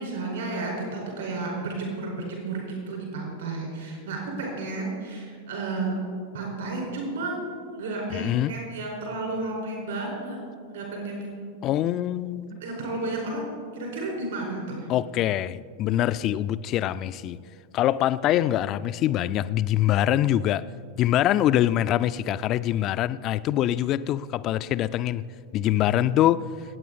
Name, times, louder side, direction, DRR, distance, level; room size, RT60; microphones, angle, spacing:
voice 1, 0.0-5.9 6.3-7.4 7.7-10.4 10.7-11.5 12.6-14.9 25.7-26.0, right 2 dB, 60° right, -1 dB, 4.7 m, -32 dB
voice 2, 8.1-8.5 11.6-12.6 14.9-17.4 17.7-20.7 21.0-25.2 25.5-26.5, left 12 dB, 35° left, 14 dB, 0.4 m, -24 dB
26.5 x 9.1 x 4.1 m, 2.1 s
figure-of-eight pair, 90°, 0 cm